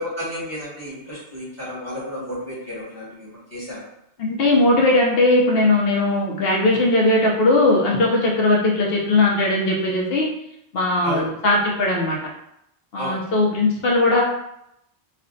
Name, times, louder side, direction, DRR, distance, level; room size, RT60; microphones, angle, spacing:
voice 1, 0.0-3.8 11.0-11.3 12.9-13.2, equal, 15° right, -9 dB, 1.4 m, -32 dB
voice 2, 4.2-10.3 10.7-12.2 12.9-14.2, left 2 dB, 75° left, -1 dB, 0.9 m, -19 dB
3.3 x 2.2 x 3.8 m, 0.79 s
omnidirectional pair, 1.0 m